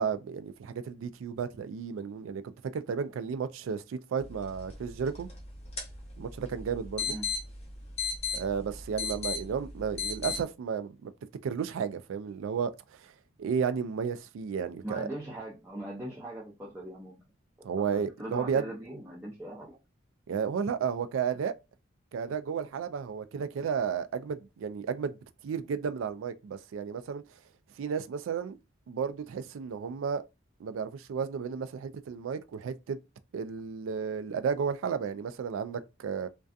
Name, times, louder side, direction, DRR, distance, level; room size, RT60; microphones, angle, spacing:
voice 1, 0.0-5.3 6.2-7.2 8.3-11.1 11.4-12.7 13.0-13.1 13.4-15.1 17.6-18.7 20.3-21.5 22.1-25.2 25.4-27.2 27.8-28.6 28.9-30.2 30.6-33.0 33.3-36.3, right 6 dB, 75° right, 0.3 m, -33 dB
sound 1, 4.2-10.4, left 4 dB, 30° left, 0.7 m, -37 dB
voice 2, 14.8-17.2 17.6-19.8, right 1 dB, 10° right, 0.5 m, -41 dB
2.5 x 2.2 x 2.3 m
head